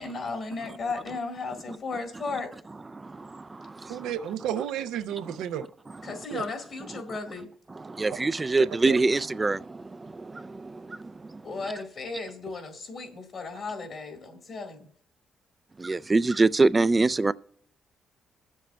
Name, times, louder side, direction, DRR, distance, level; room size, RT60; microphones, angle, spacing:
voice 1, 0.0-2.5 6.0-7.5 11.4-14.9, left 3 dB, 55° left, 1.7 m, -35 dB
voice 2, 3.9-5.6 6.3-6.4 8.9-9.0, right 10 dB, 90° right, 0.5 m, -32 dB
voice 3, 8.0-9.6 15.9-17.3, right 3 dB, 25° right, 0.3 m, -22 dB
21.0 x 7.3 x 2.3 m
cardioid pair, 90°, 0 cm